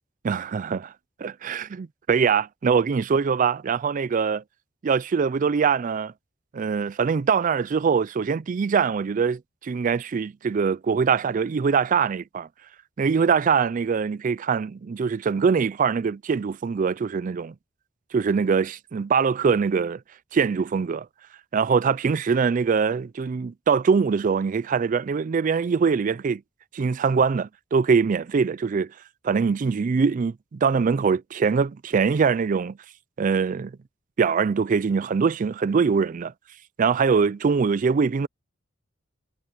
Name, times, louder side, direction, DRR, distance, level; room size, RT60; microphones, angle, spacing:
voice 1, 0.2-0.9 1.2-4.4 4.8-6.1 6.5-12.5 13.0-17.5 18.1-20.0 20.3-21.1 21.5-26.4 26.7-28.9 29.2-32.8 33.2-33.7 34.2-36.3 36.8-38.3, right 5 dB, 40° right, 0.4 m, -23 dB
head